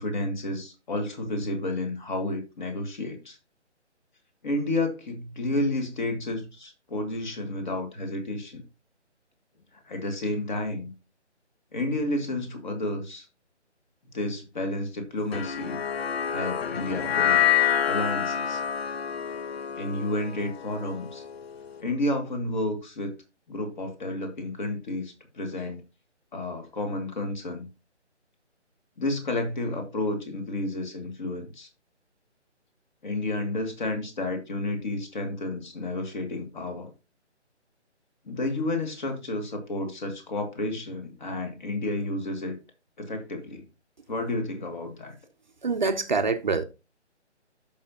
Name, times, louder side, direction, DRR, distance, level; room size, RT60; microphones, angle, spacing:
voice 1, 0.0-3.4 4.4-8.6 9.9-10.9 11.7-13.3 14.1-15.8 16.3-17.4 17.8-18.6 19.8-21.2 21.8-23.1 23.5-25.8 26.3-27.7 29.0-31.7 33.0-36.9 38.2-42.6 43.0-43.7 44.1-45.2, left 2 dB, 40° left, 2.5 m, -31 dB
sound 1, 15.3-21.7, left 8 dB, 60° left, 0.6 m, -27 dB
voice 2, 45.6-46.6, right 4 dB, 40° right, 0.7 m, -25 dB
13.0 x 5.6 x 2.9 m
figure-of-eight pair, 155°, 36 cm